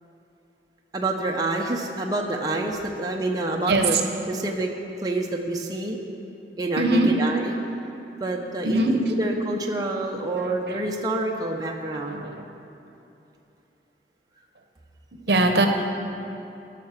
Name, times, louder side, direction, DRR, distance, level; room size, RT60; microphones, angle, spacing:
voice 1, 0.9-4.0 4.3-4.7 5.0-6.0 6.6-7.6 8.2-12.2, right 2 dB, 20° right, 0 dB, 0.6 m, -27 dB
voice 2, 3.7-4.0 6.8-7.2 8.6-9.0 10.4-10.8 12.1-12.4 15.3-15.7, right 2 dB, 65° right, 5 dB, 0.8 m, -22 dB
11.5 x 5.8 x 6.4 m, 2.9 s
head